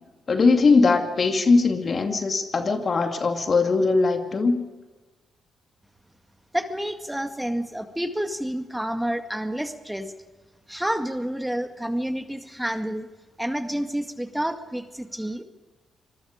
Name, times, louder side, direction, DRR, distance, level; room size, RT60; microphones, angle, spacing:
voice 1, 0.3-4.6, left 4 dB, 50° left, 6 dB, 2.4 m, -20 dB
voice 2, 6.5-10.1 10.7-13.1 13.4-15.4, equal, 5° right, 7 dB, 2.0 m, -29 dB
26.0 x 20.5 x 5.1 m, 1.2 s
hypercardioid pair, 45°, 0 cm